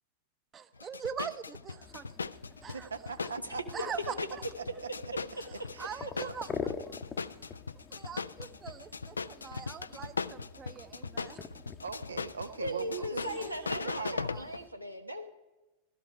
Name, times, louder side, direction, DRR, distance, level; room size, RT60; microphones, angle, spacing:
voice 1, 0.5-2.1 2.6-2.9 3.7-4.4 5.8-6.5 6.8-6.9 7.9-11.5 13.0-13.5 14.3-14.4, right 7 dB, 25° right, 12 dB, 0.8 m, -42 dB
sound 1, 0.8-14.6, left 4 dB, 75° left, 0.4 m, -39 dB
sound 2, 1.8-14.7, left 6 dB, 20° left, 0.8 m, -47 dB
voice 2, 2.7-4.1 4.8-4.9 5.5-6.4 11.8-14.3, right 5 dB, 70° right, 10 dB, 0.9 m, -41 dB
voice 3, 12.6-15.3, equal, 90° right, 6 dB, 1.2 m, -38 dB
16.0 x 13.0 x 4.7 m, 1.1 s
figure-of-eight pair, 90°, 0 cm